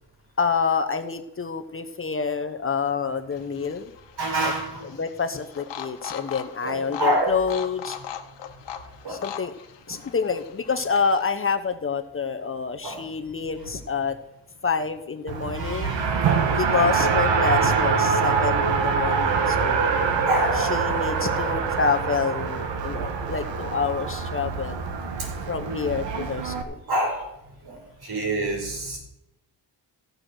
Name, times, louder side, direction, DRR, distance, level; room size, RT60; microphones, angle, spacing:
voice 1, 0.4-3.9 4.4-4.5 5.0-8.0 9.1-9.5 9.9-14.2 14.6-15.9 16.6-19.9 20.6-24.8 25.5-26.8, left 5 dB, 30° left, 7 dB, 0.8 m, -27 dB
sound 1, 3.3-11.5, left 9 dB, 80° left, 1.3 m, -40 dB
voice 2, 4.2-5.0 6.6-7.4 9.0-9.2 9.9-10.0 12.8-13.1 15.5-16.7 19.9-20.9 25.2-25.3 25.6-25.8 26.9-27.3 27.6-29.0, right 1 dB, 60° right, 1 dB, 4.8 m, -28 dB
Race car auto racing, 15.3-26.6, right 5 dB, 85° right, 1.6 m, -24 dB
15.5 x 6.5 x 6.2 m, 0.85 s
cardioid pair, 125°, 42 cm